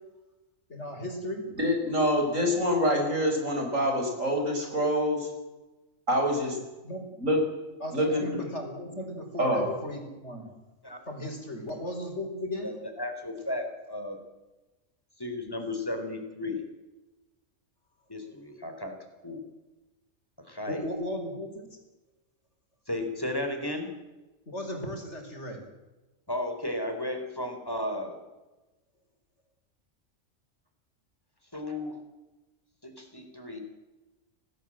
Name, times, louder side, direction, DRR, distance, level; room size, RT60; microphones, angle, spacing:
voice 1, 0.7-1.5 6.8-7.0 7.8-10.5 11.1-12.7 20.7-21.7 24.5-25.6, left 1 dB, 55° left, 3 dB, 5.4 m, -36 dB
voice 2, 1.6-5.3 6.1-6.6 7.2-7.4 7.9-8.2 9.4-9.7, equal, 70° right, 2 dB, 5.9 m, -26 dB
voice 3, 12.6-14.2 15.2-16.6 18.1-18.9 19.2-19.5 20.4-20.8 22.9-23.9 26.3-28.2 31.5-32.0 32.8-33.6, left 1 dB, 15° left, 5 dB, 4.2 m, -34 dB
27.0 x 18.5 x 7.8 m, 1.1 s
omnidirectional pair, 1.4 m